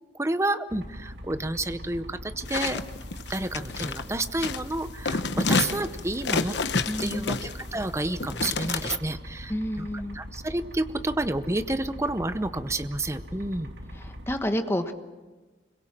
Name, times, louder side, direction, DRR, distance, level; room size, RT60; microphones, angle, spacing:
voice 1, 0.1-2.8 3.3-6.6 7.0-9.9 10.1-13.7, right 2 dB, 15° right, 12 dB, 0.8 m, -30 dB
sound 1, 0.7-14.4, equal, 75° right, 2.2 m, -42 dB
sound 2, 2.5-4.0 4.4-4.7 5.0-7.8 8.2-9.0, left 4 dB, 70° left, 1.1 m, -29 dB
voice 2, 6.9-7.4 9.5-10.2 14.0-14.9, equal, 15° left, 7 dB, 1.3 m, -30 dB
25.5 x 22.5 x 7.5 m, 1.2 s
head